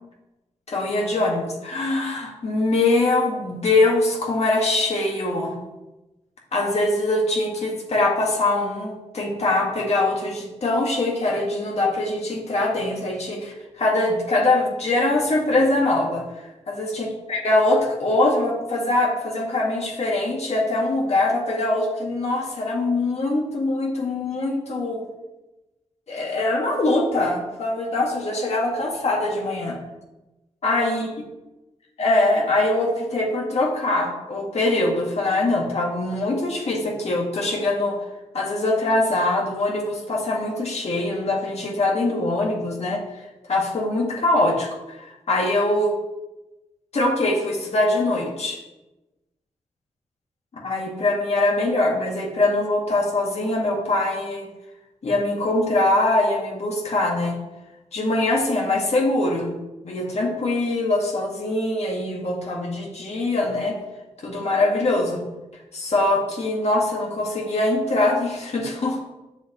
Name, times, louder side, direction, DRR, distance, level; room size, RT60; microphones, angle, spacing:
voice 1, 0.7-5.6 6.5-16.2 16.7-25.0 26.1-29.8 30.6-31.1 32.0-38.0 38.3-43.0 43.4-45.9 46.9-48.6 50.5-54.5 55.0-57.4 57.9-59.5 59.8-63.8 64.2-65.2 65.7-69.0, left 2 dB, 60° left, -2 dB, 1.8 m, -23 dB
7.9 x 6.9 x 3.1 m, 1.0 s
wide cardioid pair, 95°, 12 cm